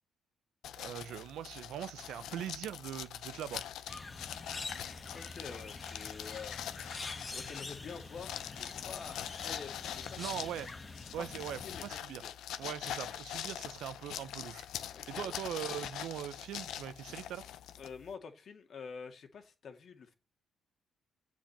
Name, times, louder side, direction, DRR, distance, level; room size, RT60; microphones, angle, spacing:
sound 1, 0.6-18.1, left 11 dB, 80° left, 0.7 m, -43 dB
voice 1, 0.8-3.6 10.2-10.7 11.1-12.2 12.6-14.7 15.1-17.5, right 11 dB, 80° right, 0.8 m, -41 dB
sound 2, 3.9-11.9, left 3 dB, 30° left, 1.5 m, -46 dB
voice 2, 5.1-6.6 7.3-10.5 11.2-12.3 14.9-15.3 17.8-20.1, left 5 dB, 55° left, 2.2 m, -48 dB
7.6 x 7.3 x 7.3 m
cardioid pair, 90°, 0 cm